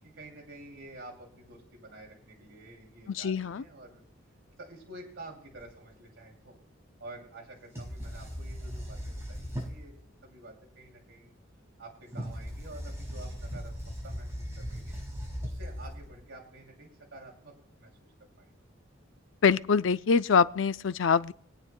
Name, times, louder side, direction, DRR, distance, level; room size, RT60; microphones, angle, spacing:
voice 1, 0.0-4.0 4.6-6.6 7.0-10.0 10.2-11.3 11.8-13.7 14.0-15.0 15.4-18.1 18.4-18.5, right 2 dB, 70° right, 2.7 m, -49 dB
voice 2, 3.1-3.6 19.4-21.3, left 5 dB, 70° left, 0.5 m, -24 dB
sound 1, 5.5-5.6 7.7-9.9 12.1-16.3, equal, 15° right, 5.3 m, -38 dB
23.5 x 9.1 x 2.2 m
head